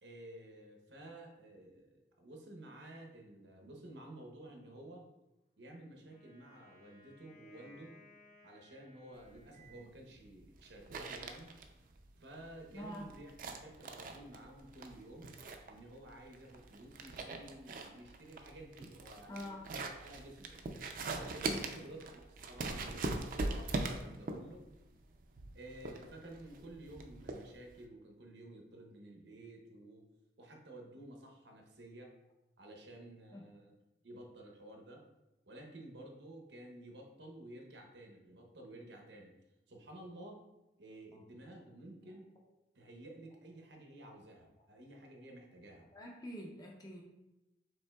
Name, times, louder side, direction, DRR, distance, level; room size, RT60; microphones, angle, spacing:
voice 1, 0.0-5.1 5.6-8.0 8.4-11.5 12.2-13.3 13.6-15.3 15.7-20.5 21.1-24.6 25.5-30.0 30.4-32.2 32.6-33.7 34.0-35.0 35.4-39.3 39.7-40.4 40.8-42.3 42.7-45.9, right 1 dB, 85° right, 2 dB, 0.8 m, -52 dB
Wind instrument woodwind instrument, 6.1-10.3, left 2 dB, 55° left, 1.4 m, -63 dB
sound 1, 9.2-27.8, right 2 dB, 50° right, 0.4 m, -42 dB
voice 2, 12.7-13.2 17.3-17.4 19.3-19.7 21.4-21.8 33.3-33.5 41.1-41.2 42.0-42.2 44.6-44.7 45.9-47.0, left 1 dB, 20° left, -1 dB, 0.5 m, -47 dB
5.3 x 3.7 x 2.3 m, 0.98 s
head